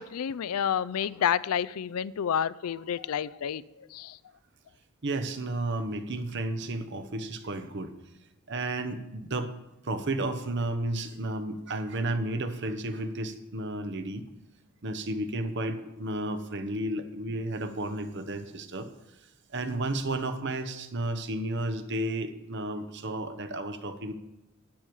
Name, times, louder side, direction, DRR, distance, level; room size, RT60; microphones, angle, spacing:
voice 1, 0.0-3.6 3.9-4.2, left 8 dB, 90° left, 18 dB, 0.4 m, -29 dB
voice 2, 5.0-7.9 8.5-9.5 9.8-14.2 14.8-18.9 19.5-24.1, right 2 dB, 55° right, 10 dB, 0.9 m, -32 dB
12.0 x 9.2 x 4.7 m, 0.99 s
head